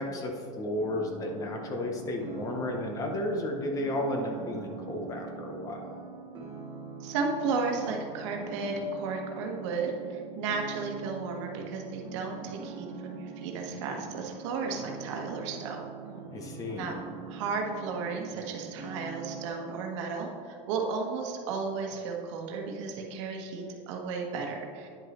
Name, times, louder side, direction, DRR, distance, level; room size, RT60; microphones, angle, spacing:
voice 1, 0.0-5.9 16.3-16.9, left 1 dB, 20° left, 2 dB, 0.6 m, -33 dB
sound 1, 0.8-19.5, right 6 dB, 25° right, 1.0 m, -43 dB
voice 2, 7.0-15.8 16.8-17.0 17.3-24.9, right 4 dB, 65° right, 1 dB, 1.2 m, -34 dB
9.7 x 6.2 x 3.0 m, 2.3 s
supercardioid pair, 170°, 16 cm